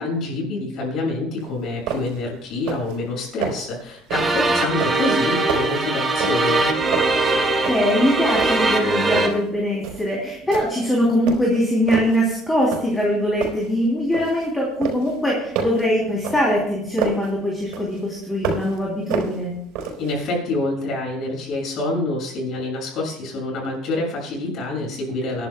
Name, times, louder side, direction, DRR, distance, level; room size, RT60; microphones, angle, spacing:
voice 1, 0.0-6.7 20.0-25.5, left 2 dB, 50° left, -2 dB, 6.9 m, -27 dB
sound 1, 1.4-1.5 1.9-2.3 2.5-3.0 3.2-3.7 4.1-4.4 4.8-6.6 6.9-8.0 8.3-9.4 9.8-10.1 10.5-10.9 11.3-12.2 12.7-13.1 13.4-14.5 14.8-17.3 17.7-18.8 19.1-20.2, right 6 dB, 80° right, 4.2 m, -29 dB
sound 2, 4.1-9.3, right 2 dB, 20° right, 2.0 m, -21 dB
voice 2, 7.3-19.5, equal, 10° left, -3 dB, 3.1 m, -22 dB
28.0 x 11.0 x 2.3 m, 0.75 s
cardioid pair, 135°, 0 cm